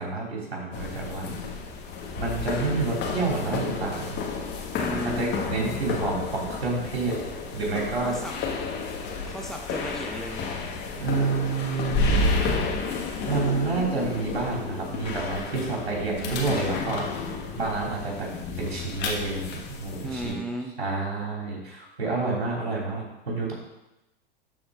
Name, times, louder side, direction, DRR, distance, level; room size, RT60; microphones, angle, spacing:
voice 1, 0.0-1.3 2.2-4.2 5.0-7.1 7.5-8.1 11.0-12.6 13.2-17.0 17.6-18.3 18.6-20.3 20.8-23.5, right 4 dB, 80° right, -2 dB, 3.2 m, -29 dB
sound 1, 0.7-20.3, left 3 dB, 35° left, 1.5 m, -31 dB
voice 2, 4.8-5.4 8.0-8.4 9.3-10.6 20.0-20.7, equal, ahead, 2 dB, 0.9 m, -34 dB
12.5 x 4.4 x 3.8 m, 0.93 s
figure-of-eight pair, 95°, 31 cm